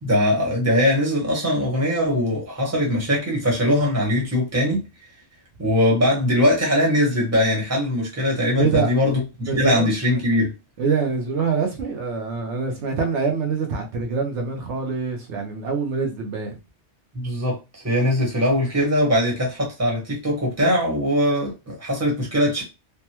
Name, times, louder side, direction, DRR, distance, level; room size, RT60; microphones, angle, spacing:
voice 1, 0.0-4.8 5.6-10.5 17.1-22.6, equal, 15° right, 1.0 m, -21 dB
voice 2, 8.6-8.9 9.5-9.9 10.8-16.6, right 5 dB, 75° right, 1.0 m, -25 dB
3.3 x 2.1 x 2.9 m
omnidirectional pair, 1.2 m